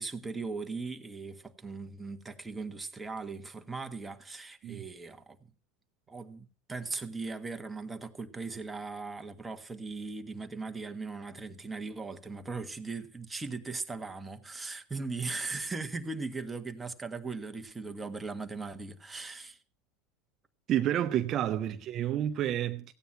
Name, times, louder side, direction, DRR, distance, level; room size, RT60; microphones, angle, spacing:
voice 1, 0.0-5.5 6.1-19.6 21.6-21.8, right 4 dB, 15° right, 1.6 m, -39 dB
voice 2, 20.7-22.9, right 11 dB, 45° right, 0.8 m, -29 dB
16.0 x 9.3 x 5.8 m
hypercardioid pair, 100°, 0 cm